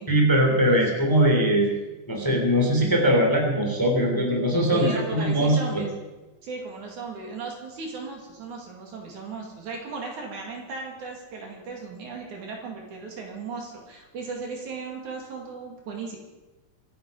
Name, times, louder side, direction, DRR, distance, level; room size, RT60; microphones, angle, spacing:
voice 1, 0.1-1.7 2.1-5.8, equal, 5° left, 1 dB, 2.5 m, -21 dB
voice 2, 4.7-5.9 6.4-16.2, right 4 dB, 60° right, 1 dB, 3.6 m, -36 dB
24.5 x 9.9 x 5.5 m, 1.1 s
omnidirectional pair, 4.1 m